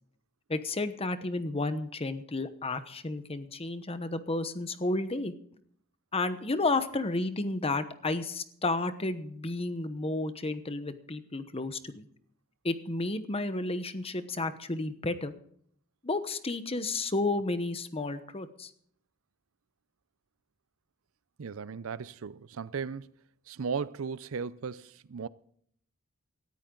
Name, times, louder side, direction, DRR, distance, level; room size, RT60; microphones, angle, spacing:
voice 1, 0.5-5.3 6.1-12.1 12.6-15.3 16.0-18.7, left 2 dB, 30° left, 1.0 m, -32 dB
voice 2, 21.4-23.1 23.5-25.3, right 5 dB, 70° right, 0.5 m, -36 dB
18.0 x 13.5 x 3.9 m
head